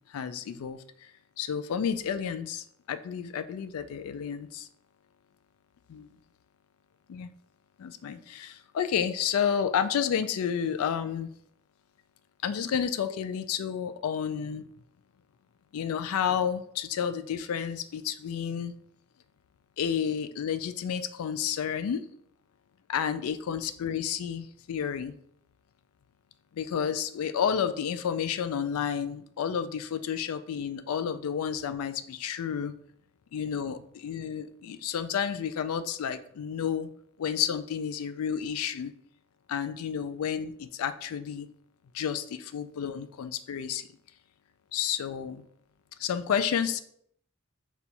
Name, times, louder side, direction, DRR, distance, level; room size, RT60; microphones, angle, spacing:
voice 1, 0.1-0.8 1.4-4.7 5.9-6.1 7.1-7.3 7.8-11.3 12.4-14.6 15.7-18.7 19.8-22.0 22.9-25.1 26.5-32.7 33.3-36.9 37.2-38.9 39.5-41.5 41.9-43.9 44.7-45.4 46.0-46.8, left 8 dB, 90° left, 11 dB, 0.3 m, -31 dB
4.2 x 2.3 x 4.0 m, 0.67 s
head